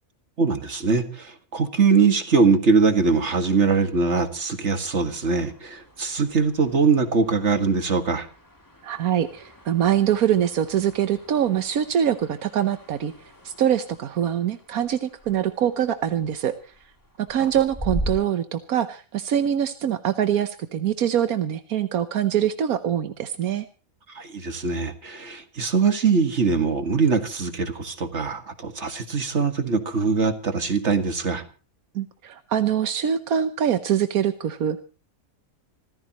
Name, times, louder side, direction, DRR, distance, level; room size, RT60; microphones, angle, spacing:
voice 1, 0.4-8.3 24.1-31.4, right 5 dB, 50° right, 8 dB, 2.1 m, -22 dB
sound 1, 3.0-18.1, equal, 15° left, 2.7 m, -41 dB
voice 2, 8.8-13.1 13.4-16.6 17.2-23.7 31.9-34.8, right 9 dB, 85° right, 10 dB, 1.4 m, -24 dB
26.0 x 15.0 x 3.0 m, 0.34 s
omnidirectional pair, 1.5 m